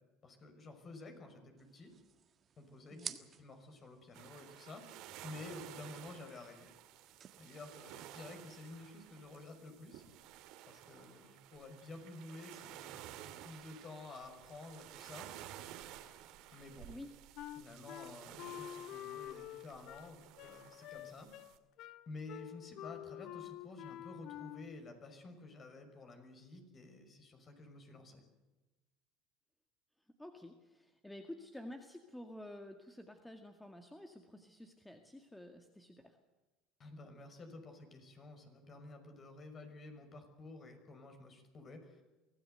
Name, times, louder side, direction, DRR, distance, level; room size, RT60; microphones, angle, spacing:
voice 1, 0.2-1.9 2.6-6.7 7.4-10.0 10.7-15.3 16.5-16.9 17.6-21.3 22.1-28.2 36.8-42.1, left 2 dB, 35° left, 6 dB, 5.9 m, -51 dB
sound 1, 1.6-9.2, right 8 dB, 35° right, 1.6 m, -54 dB
sound 2, 4.1-21.6, right 12 dB, 65° right, 2.3 m, -53 dB
Wind instrument woodwind instrument, 17.4-24.8, left 13 dB, 60° left, 0.9 m, -48 dB
voice 2, 30.2-36.2, left 1 dB, 5° left, 5 dB, 2.1 m, -51 dB
24.5 x 16.5 x 8.0 m, 1.2 s
supercardioid pair, 110°, 0 cm